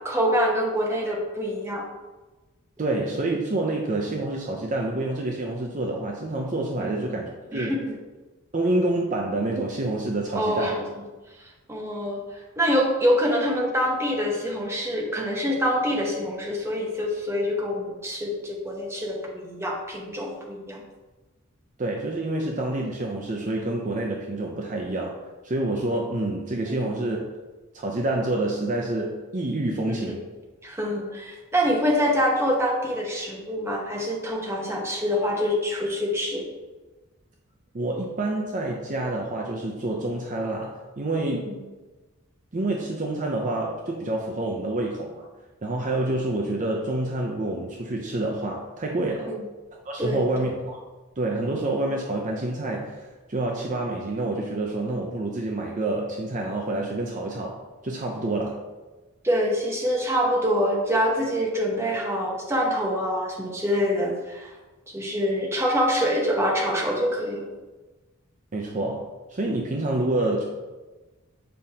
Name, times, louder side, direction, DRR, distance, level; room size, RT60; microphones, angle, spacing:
voice 1, 0.0-1.8 6.8-7.0 7.5-8.0 10.3-10.8 11.7-20.8 26.7-26.9 29.9-30.2 30.6-36.5 41.3-41.6 49.3-49.4 50.0-50.3 59.2-64.5 64.9-67.5, equal, 10° right, -1 dB, 1.0 m, -25 dB
voice 2, 2.8-7.8 8.5-10.8 21.8-25.2 25.4-27.2 27.7-30.3 37.7-41.6 42.5-45.2 45.6-49.3 49.8-50.8 51.2-53.0 53.3-57.6 57.8-58.6 68.5-70.4, right 2 dB, 35° right, -1 dB, 0.6 m, -27 dB
7.7 x 5.0 x 2.8 m, 1.2 s
head